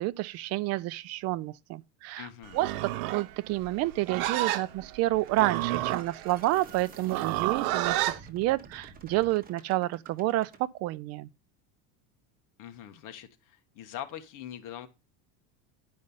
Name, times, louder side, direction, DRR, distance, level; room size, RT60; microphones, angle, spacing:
voice 1, 0.0-2.3 2.5-11.3, right 17 dB, 40° right, 0.4 m, -29 dB
voice 2, 2.2-2.6 12.6-14.9, left 11 dB, 45° left, 1.4 m, -42 dB
Livestock farm animals working animals, 2.5-8.2, right 15 dB, 80° right, 0.9 m, -31 dB
sound 1, 5.2-10.6, right 5 dB, 20° right, 1.1 m, -51 dB
10.5 x 5.3 x 5.4 m
cardioid pair, 155°, 42 cm